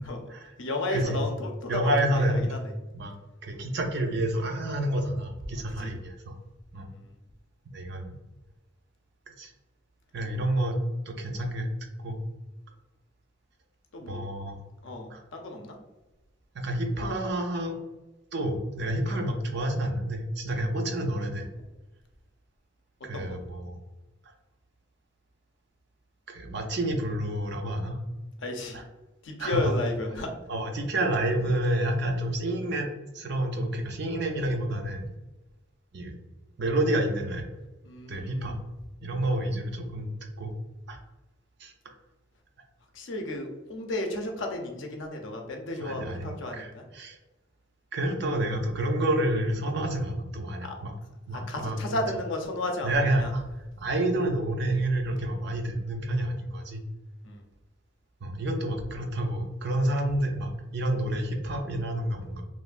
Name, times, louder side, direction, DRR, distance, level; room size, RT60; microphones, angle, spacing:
voice 1, 0.6-2.6 5.7-5.9 6.7-7.1 13.9-14.2 14.8-15.7 19.1-19.2 23.1-23.4 28.4-28.8 29.2-30.3 37.8-38.6 42.9-46.8 50.6-50.8 51.3-52.9 53.2-53.3 57.2-57.4, left 2 dB, 70° left, 3 dB, 0.5 m, -33 dB
voice 2, 1.7-2.5 2.9-3.1 3.4-6.3 6.7-6.9 7.7-8.1 9.4-9.5 10.1-10.8 11.1-11.7 12.0-12.2 14.1-14.6 15.1-15.2 16.5-17.8 18.3-21.5 23.0-23.8 26.3-28.0 28.7-28.8 29.4-29.7 30.5-32.9 33.1-35.1 35.9-36.1 36.6-37.5 38.1-38.5 39.0-40.5 40.9-41.0 41.6-41.9 45.8-47.2 47.9-50.9 51.3-52.0 52.8-53.4 53.8-56.8 58.2-62.4, right 1 dB, 55° right, 3 dB, 0.5 m, -29 dB
3.1 x 2.3 x 2.4 m, 1.1 s
head